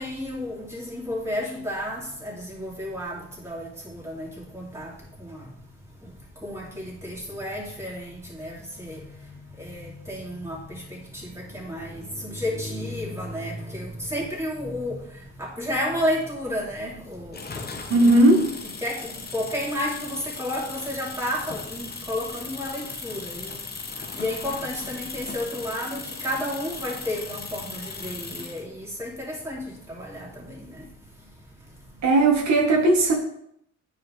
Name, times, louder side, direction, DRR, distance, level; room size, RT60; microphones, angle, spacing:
voice 1, 0.0-3.2 3.4-4.3 4.5-4.9 5.3-5.4 6.4-9.0 9.6-10.8 11.5-15.0 15.4-17.7 18.8-23.5 24.1-29.6 29.9-30.3, left 1 dB, 10° right, -4 dB, 2.7 m, -31 dB
sound 1, 17.3-28.6, left 4 dB, 30° left, 1.1 m, -37 dB
voice 2, 17.9-18.5 32.0-33.1, right 2 dB, 65° right, 0 dB, 1.5 m, -17 dB
9.4 x 4.9 x 3.4 m, 0.73 s
cardioid pair, 90°, 30 cm